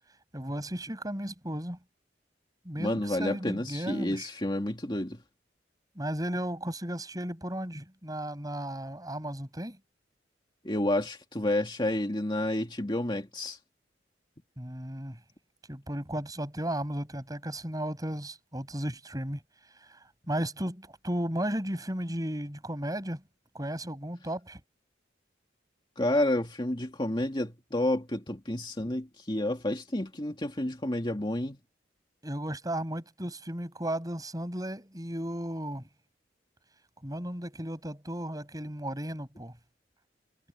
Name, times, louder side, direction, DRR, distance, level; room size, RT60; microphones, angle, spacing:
voice 1, 0.3-1.8 2.7-4.3 6.0-9.8 14.6-15.2 15.7-19.4 20.3-23.2 23.5-24.6 32.2-35.9 37.0-39.5, right 1 dB, 20° right, 7.1 m, -34 dB
voice 2, 2.8-5.2 10.6-13.6 26.0-31.6, left 1 dB, 25° left, 2.3 m, -30 dB
head